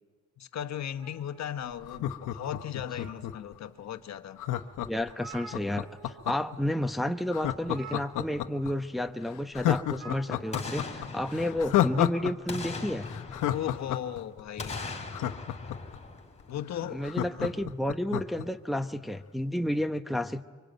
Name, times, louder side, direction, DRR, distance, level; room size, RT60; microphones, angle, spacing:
voice 1, 0.4-4.4 13.5-14.9 16.5-17.1 17.4-17.6, left 10 dB, 65° left, 1.3 m, -37 dB
sound 1, 1.0-2.2 2.6-3.5 4.1-4.2 4.6-4.7 4.9-6.3 6.5-6.7 7.6-8.7 9.9-10.7, right 5 dB, 60° right, 2.9 m, -49 dB
Laughter, 1.8-3.5 4.4-6.6 7.3-8.7 9.1-9.2 9.5-12.3 12.6-12.7 13.1-16.0 16.4-16.5 16.7-18.5 18.8-18.9, left 12 dB, 85° left, 1.1 m, -30 dB
voice 2, 4.9-13.1 16.9-20.4, left 1 dB, ahead, 0.9 m, -31 dB
Boom, 10.5-12.0 12.5-14.1 14.6-16.8 17.2-17.3, left 3 dB, 20° left, 4.4 m, -40 dB
24.5 x 24.0 x 9.2 m
cardioid pair, 90°, 30 cm